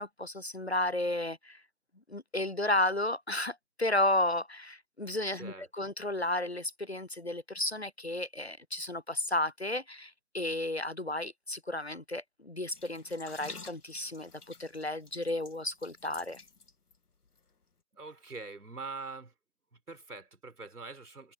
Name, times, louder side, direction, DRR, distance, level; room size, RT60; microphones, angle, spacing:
voice 1, 0.0-1.6 2.1-16.4, left 1 dB, 45° left, 0.7 m, -33 dB
voice 2, 5.3-5.7 17.9-19.3 19.7-21.3, right 4 dB, 75° right, 5.0 m, -44 dB
sound 1, 12.7-17.0 17.3-17.4, left 4 dB, 75° left, 2.1 m, -50 dB
open air
figure-of-eight pair, 180°, 45 cm